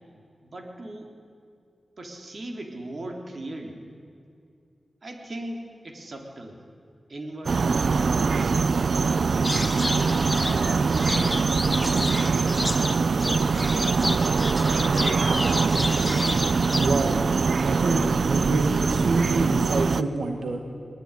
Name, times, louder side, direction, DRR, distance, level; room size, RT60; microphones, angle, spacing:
voice 1, 0.4-1.1 2.0-3.8 5.0-6.6 7.1-9.5 9.9-11.4 12.1-13.3, right 1 dB, 50° right, 3 dB, 3.6 m, -39 dB
sound 1, 7.4-20.0, right 4 dB, 65° right, 0.6 m, -23 dB
sound 2, 9.4-17.2, left 1 dB, 15° left, 1.4 m, -31 dB
voice 2, 16.8-17.2 17.6-20.6, right 3 dB, 90° right, 4 dB, 2.0 m, -26 dB
22.0 x 20.5 x 10.0 m, 2.4 s
wide cardioid pair, 90°, 0 cm